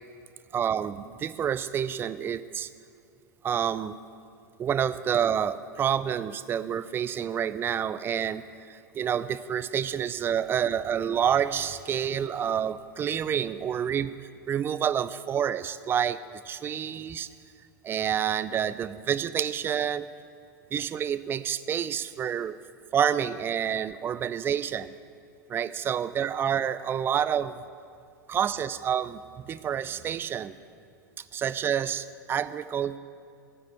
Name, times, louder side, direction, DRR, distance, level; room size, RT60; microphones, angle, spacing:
voice 1, 0.5-2.7 3.4-4.0 4.6-14.2 14.5-16.2 16.4-17.3 17.8-20.1 20.7-22.6 22.9-24.9 25.5-27.6 28.3-30.5 31.3-33.0, right 8 dB, 20° right, 14 dB, 0.4 m, -28 dB
14.5 x 5.0 x 9.3 m, 2.4 s
figure-of-eight pair, 85°, 10 cm